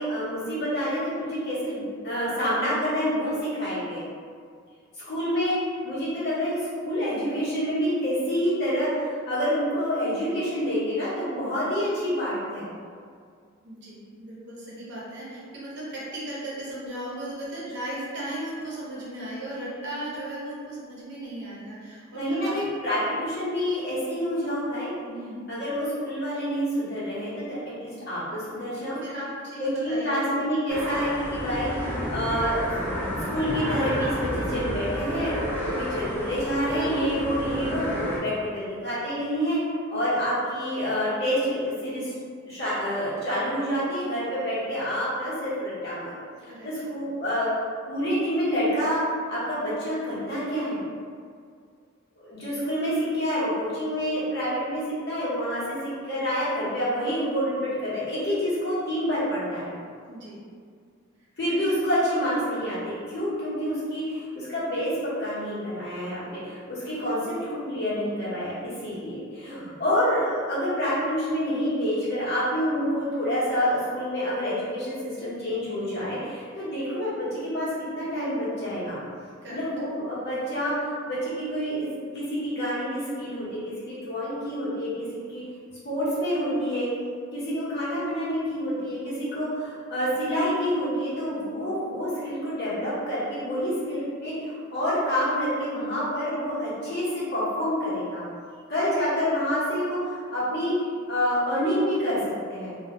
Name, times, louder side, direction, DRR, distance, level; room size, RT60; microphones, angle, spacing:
voice 1, 0.0-4.0 5.1-12.7 22.1-24.9 25.5-29.0 29.6-35.3 35.8-39.6 39.9-42.1 42.5-46.2 46.4-47.5 47.9-49.0 49.3-50.8 52.2-59.7 61.4-64.9 65.2-79.0 79.5-85.4 85.8-86.9 87.3-98.2 98.7-100.8 101.1-102.2 102.5-102.8, equal, 55° left, -10 dB, 1.0 m, -28 dB
voice 2, 13.6-22.6 25.1-25.4 29.0-30.3 31.9-32.3 46.4-46.7 60.1-60.4 79.4-79.6 98.5-98.6, right 1 dB, 60° right, -7 dB, 0.7 m, -36 dB
sound 1, 30.7-38.2, equal, 10° left, 0.4 m, -30 dB
2.3 x 2.0 x 2.9 m, 2.1 s
head